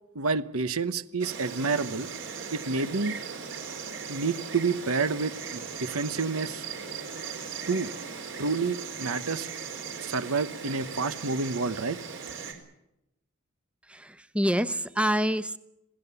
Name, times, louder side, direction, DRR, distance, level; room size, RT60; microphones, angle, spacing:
voice 1, 0.1-2.1 2.5-3.2 4.1-6.6 7.7-7.9 8.4-9.5 10.0-12.0, right 4 dB, 75° right, 13 dB, 1.0 m, -29 dB
Insect, 1.2-12.5, right 5 dB, 60° right, 4.1 m, -38 dB
voice 2, 13.9-15.6, equal, 5° right, 13 dB, 0.9 m, -27 dB
27.0 x 17.5 x 6.9 m, 0.85 s
head